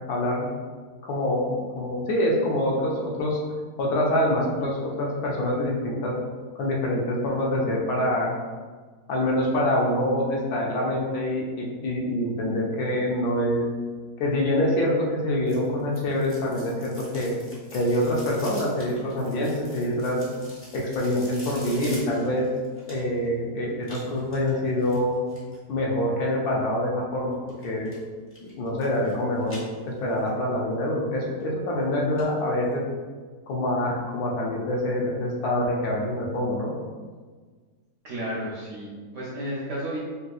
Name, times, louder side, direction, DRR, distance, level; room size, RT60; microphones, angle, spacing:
voice 1, 0.1-0.5 1.0-3.4 3.8-6.1 6.6-8.3 9.1-13.6 14.2-17.3 17.7-20.2 20.7-22.4 22.9-25.2 25.7-27.9 28.5-29.6 30.0-32.8 33.5-36.7, left 1 dB, 70° left, -3 dB, 1.1 m, -25 dB
sound 1, 15.5-23.3 23.8-25.6 27.5-28.0 28.3-29.1 29.4-30.3 30.7-30.8 31.4-31.5 31.8-31.9 32.2-32.3 32.6-32.7, equal, 15° left, 0.4 m, -45 dB
voice 2, 38.0-40.0, equal, 65° right, -5 dB, 0.8 m, -32 dB
3.3 x 2.8 x 2.3 m, 1.5 s
omnidirectional pair, 1.7 m